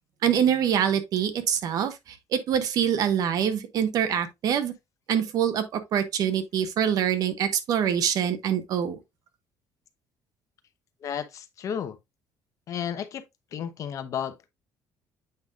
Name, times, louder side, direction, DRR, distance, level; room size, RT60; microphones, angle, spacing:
voice 1, 0.2-4.7 5.1-9.0, right 9 dB, 60° right, 1.1 m, -25 dB
voice 2, 11.0-12.0 12.7-13.2 13.5-14.5, left 8 dB, 50° left, 0.9 m, -33 dB
7.9 x 5.4 x 2.4 m
cardioid pair, 145°, 7 cm